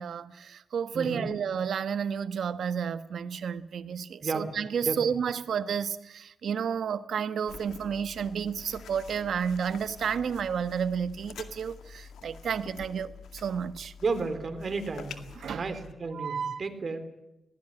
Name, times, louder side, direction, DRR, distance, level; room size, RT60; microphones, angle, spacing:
voice 1, 0.0-13.9 15.4-15.7 16.1-16.6, right 7 dB, 75° right, 1.2 m, -31 dB
voice 2, 0.9-1.3 4.2-4.5 4.8-5.0 14.0-15.2 15.5-17.0, right 4 dB, 50° right, 3.7 m, -32 dB
sound 1, 7.5-15.9, left 6 dB, 85° left, 2.0 m, -47 dB
20.0 x 18.0 x 10.0 m
cardioid pair, 80°, 0 cm